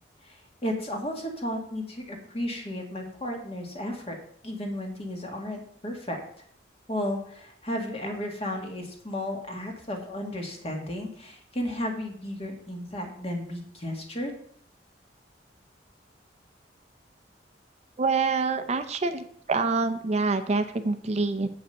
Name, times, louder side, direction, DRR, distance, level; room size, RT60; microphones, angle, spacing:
voice 1, 0.2-4.2 4.4-6.2 6.9-14.3, left 1 dB, 35° left, 2 dB, 1.7 m, -33 dB
voice 2, 18.0-21.5, right 4 dB, 40° right, 8 dB, 0.5 m, -26 dB
7.8 x 5.2 x 6.6 m, 0.63 s
head